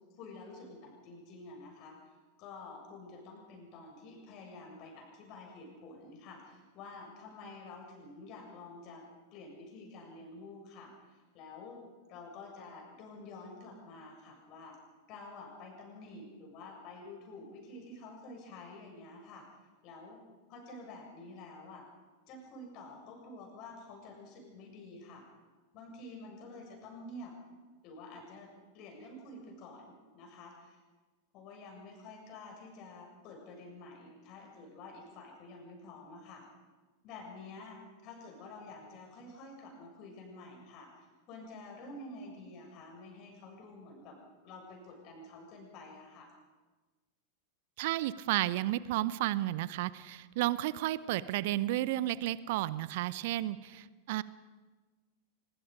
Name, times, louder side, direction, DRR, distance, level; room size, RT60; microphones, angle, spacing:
voice 1, 0.2-9.0 9.3-11.8 12.1-14.8 15.1-19.5 19.8-20.2 20.5-21.8 22.3-25.2 25.7-27.4 27.8-30.8 31.3-36.4 37.0-44.2 44.4-46.3, left 2 dB, 40° left, 1 dB, 7.1 m, -49 dB
voice 2, 47.8-54.2, right 15 dB, 50° right, 18 dB, 0.7 m, -32 dB
24.0 x 22.5 x 5.2 m, 1.3 s
figure-of-eight pair, 90°, 0 cm